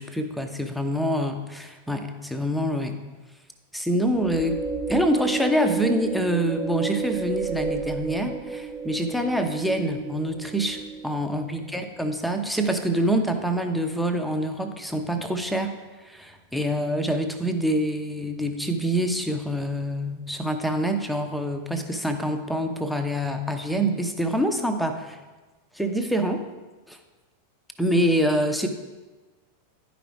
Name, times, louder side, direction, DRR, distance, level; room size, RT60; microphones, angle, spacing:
voice 1, 0.0-2.9 3.7-4.6 4.9-15.7 16.0-25.2 25.7-26.4 26.9-27.0 27.8-28.7, equal, ahead, 5 dB, 0.8 m, -26 dB
sound 1, 4.1-11.4, right 5 dB, 25° right, 0.9 m, -31 dB
10.5 x 5.1 x 4.7 m, 1.2 s
figure-of-eight pair, 90°, 0 cm